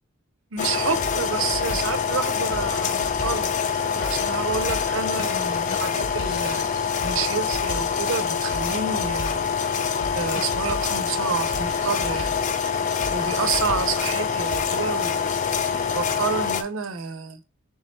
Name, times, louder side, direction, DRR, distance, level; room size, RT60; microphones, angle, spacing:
voice 1, 0.5-3.5 3.9-6.6 7.0-9.4 10.1-12.3 13.1-15.4 15.9-17.4, right 5 dB, 75° right, 0.5 m, -29 dB
sound 1, 0.6-14.6, left 1 dB, 75° left, 1.1 m, -38 dB
sound 2, 0.6-16.6, left 6 dB, 35° left, 0.3 m, -25 dB
3.6 x 3.1 x 4.2 m
head